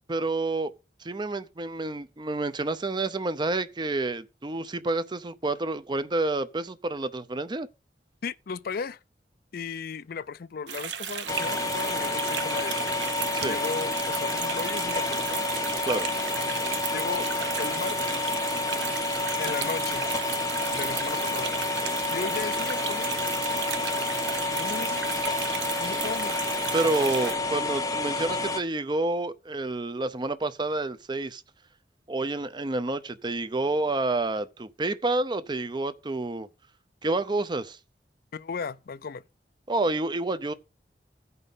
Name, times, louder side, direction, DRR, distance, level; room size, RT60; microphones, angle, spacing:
voice 1, 0.1-0.7 1.0-7.7 13.3-13.6 15.8-16.1 26.7-31.4 32.1-36.5 37.0-37.8 39.7-40.5, right 2 dB, 25° right, 0.6 m, -29 dB
voice 2, 8.2-9.0 9.5-12.8 13.4-15.5 16.8-17.3 17.6-18.3 19.4-20.1 20.7-21.5 22.1-23.2 24.5-25.1 25.8-26.4 38.3-39.2, left 5 dB, 55° left, 0.4 m, -36 dB
sound 1, 10.7-27.4, right 9 dB, 90° right, 0.8 m, -35 dB
sound 2, 11.3-28.6, left 2 dB, 20° left, 0.7 m, -29 dB
15.0 x 5.4 x 4.0 m
head